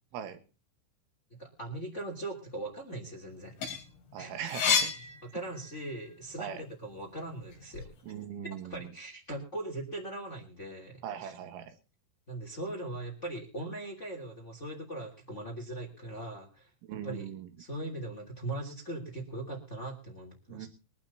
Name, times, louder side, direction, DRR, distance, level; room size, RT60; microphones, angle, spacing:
voice 1, 1.3-3.5 4.2-4.4 5.2-7.9 8.4-11.3 12.3-16.7 17.0-17.3 17.6-20.7, right 1 dB, 20° left, 2 dB, 2.4 m, -40 dB
sound 1, 3.3-6.0 6.5-7.9, left 6 dB, 80° left, 5.6 m, -32 dB
voice 2, 4.1-4.9 6.4-6.6 8.0-8.9 11.0-11.7 16.9-17.5 20.5-20.7, right 9 dB, 75° right, 7 dB, 3.9 m, -40 dB
23.0 x 12.0 x 2.8 m, 0.34 s
omnidirectional pair, 5.6 m